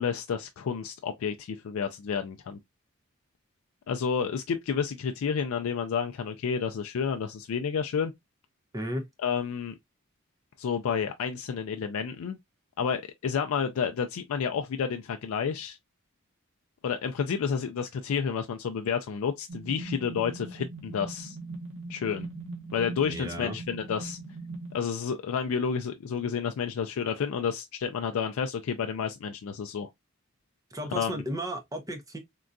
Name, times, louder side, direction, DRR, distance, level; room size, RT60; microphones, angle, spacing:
voice 1, 0.0-2.6 3.9-8.1 9.2-9.7 10.6-12.4 12.8-15.8 16.8-21.4 21.9-22.3 22.7-24.2 24.7-29.9 30.9-31.1, left 6 dB, 75° left, 0.3 m, -30 dB
voice 2, 8.7-9.1 23.0-23.6 30.7-32.2, equal, 15° right, 0.5 m, -34 dB
sound 1, 19.5-24.8, right 2 dB, 60° right, 0.8 m, -40 dB
3.7 x 2.2 x 2.4 m
head